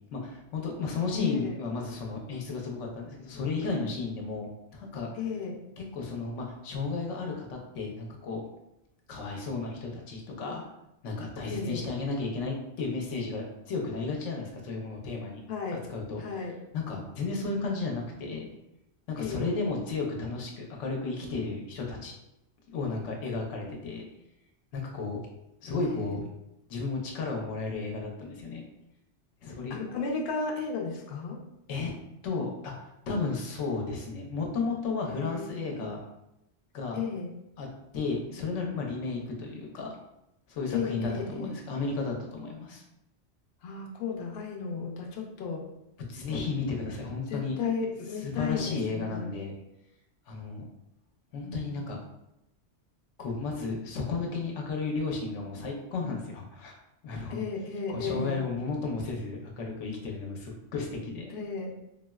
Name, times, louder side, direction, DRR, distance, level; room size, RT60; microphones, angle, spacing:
voice 1, 0.1-5.1 5.8-8.4 9.1-10.6 11.0-15.4 15.9-16.5 16.7-18.5 19.1-22.1 22.7-24.0 24.7-25.2 25.6-26.2 26.7-28.6 29.4-29.8 31.7-31.9 32.2-32.7 33.1-36.0 36.7-37.1 37.6-37.7 37.9-39.9 40.5-42.8 46.0-47.6 48.2-49.5 50.3-50.7 51.3-52.0 53.2-56.8 57.0-57.4 57.9-61.3, left 4 dB, 90° left, 0 dB, 1.0 m, -33 dB
voice 2, 1.1-1.5 5.2-5.6 11.4-11.8 15.5-15.8 16.2-16.6 19.2-19.5 25.9-26.1 29.7-31.4 35.1-35.9 36.9-37.3 40.7-41.5 43.6-45.6 47.3-49.3 51.4-51.8 57.3-58.4 61.3-61.7, left 5 dB, 65° left, 0 dB, 0.7 m, -34 dB
3.8 x 2.0 x 2.2 m, 0.87 s
omnidirectional pair, 1.2 m